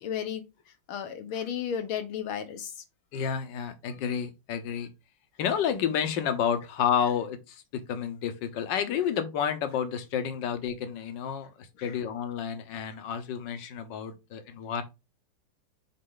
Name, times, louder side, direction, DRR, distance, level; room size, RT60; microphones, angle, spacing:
voice 1, 0.0-2.8 11.8-11.9, left 8 dB, 80° left, 2.0 m, -34 dB
voice 2, 3.1-4.9 5.4-14.8, left 8 dB, 65° left, 1.6 m, -30 dB
6.7 x 4.2 x 3.9 m
omnidirectional pair, 2.2 m